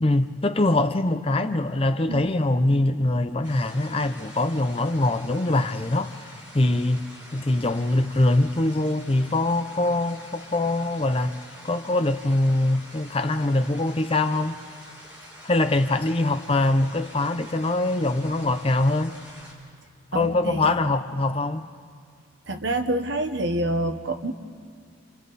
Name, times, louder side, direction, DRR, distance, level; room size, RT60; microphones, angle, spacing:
voice 1, 0.0-6.2 6.5-7.1 7.3-11.4 11.6-14.6 15.4-19.2 20.1-21.7, left 2 dB, 25° left, 0.6 m, -23 dB
sound 1, 3.4-19.5, equal, 10° right, 6.1 m, -46 dB
voice 2, 20.1-20.9 22.5-24.3, right 1 dB, 60° right, 1.2 m, -27 dB
29.0 x 29.0 x 4.2 m
head